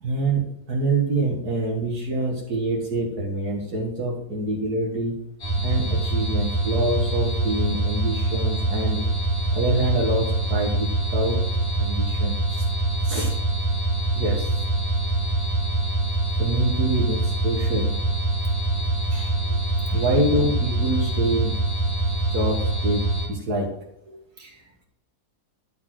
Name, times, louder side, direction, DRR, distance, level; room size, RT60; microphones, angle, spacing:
voice 1, 0.0-5.3 5.6-9.0 9.5-11.4 11.8-12.7 13.0-13.4 14.1-14.6 16.4-18.1 19.9-21.6 22.3-23.7, right 2 dB, 75° right, -3 dB, 2.2 m, -26 dB
sound 1, 5.4-23.3, right 2 dB, 80° left, 3.4 m, -24 dB
voice 2, 19.1-20.2 22.5-22.6 24.1-24.8, right 4 dB, 55° right, -2 dB, 2.8 m, -46 dB
12.0 x 4.3 x 7.6 m, 0.80 s
omnidirectional pair, 1.7 m